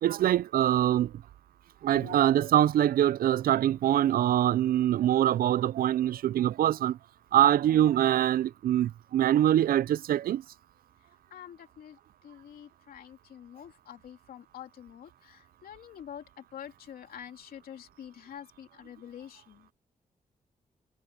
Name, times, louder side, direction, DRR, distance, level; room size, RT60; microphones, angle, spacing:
voice 1, 0.0-1.1 1.8-7.0 7.3-10.4, right 12 dB, 80° right, 0.4 m, -24 dB
voice 2, 11.3-12.0 12.2-19.7, left 9 dB, 90° left, 2.8 m, -46 dB
cardioid pair, 65°, 15 cm